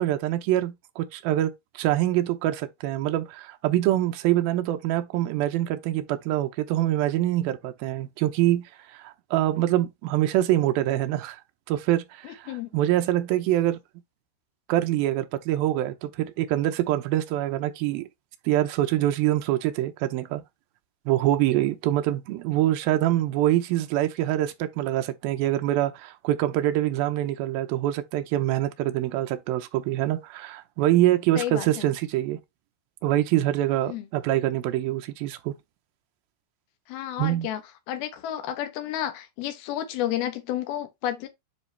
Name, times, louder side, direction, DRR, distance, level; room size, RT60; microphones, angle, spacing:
voice 1, 0.0-11.4 11.7-13.8 14.7-18.1 18.5-20.4 21.1-32.4 33.0-35.6 37.2-37.5, right 14 dB, 80° right, 2.2 m, -25 dB
voice 2, 12.2-12.7 31.4-31.9 33.9-34.0 36.9-37.6 37.9-41.3, left 11 dB, 70° left, 2.8 m, -31 dB
9.9 x 3.4 x 3.3 m
omnidirectional pair, 5.0 m